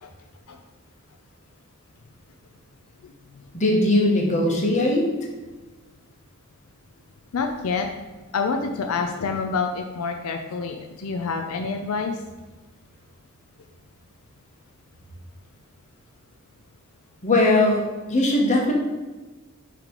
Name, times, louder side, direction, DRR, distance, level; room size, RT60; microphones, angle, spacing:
voice 1, 3.5-5.1 17.2-18.7, left 1 dB, 35° left, -1 dB, 1.3 m, -20 dB
voice 2, 7.3-7.9 8.3-12.2, left 4 dB, 80° left, 4 dB, 0.5 m, -27 dB
6.6 x 3.3 x 5.1 m, 1.2 s
head